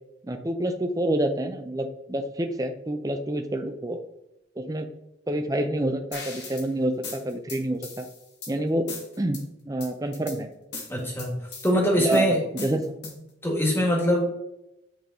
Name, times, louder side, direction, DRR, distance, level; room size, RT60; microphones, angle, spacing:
voice 1, 0.2-4.0 4.6-4.9 5.3-8.1 8.5-10.5 12.0-12.3 12.5-12.8, right 1 dB, 20° right, 7 dB, 0.5 m, -28 dB
sound 1, 6.1-6.7 7.0-8.5 8.9-9.4 9.8-10.4 10.7-11.7 12.1-13.3, left 3 dB, 60° left, 1.5 m, -38 dB
voice 2, 10.9-11.4 11.6-12.4 13.4-14.3, equal, 10° left, -1 dB, 1.4 m, -23 dB
8.1 x 3.5 x 3.7 m, 0.87 s
head